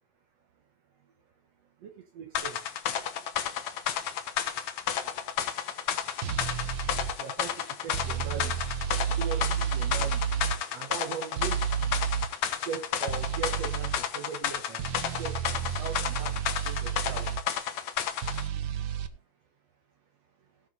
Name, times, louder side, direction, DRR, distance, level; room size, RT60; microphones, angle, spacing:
voice 1, 1.8-2.6 2.9-3.0 5.7-5.8 6.4-6.5 7.0-10.4 10.7-12.0 12.6-16.4 16.6-17.3 18.5-18.8, right 7 dB, 65° right, 6 dB, 2.3 m, -40 dB
sound 1, 2.3-18.5, left 9 dB, 70° left, 2.3 m, -32 dB
sound 2, 6.2-7.1 7.9-10.6 11.4-12.3 13.1-14.0 14.8-17.4 18.2-19.1, right 9 dB, 85° right, 1.0 m, -31 dB
17.5 x 5.9 x 4.0 m, 0.30 s
omnidirectional pair, 3.3 m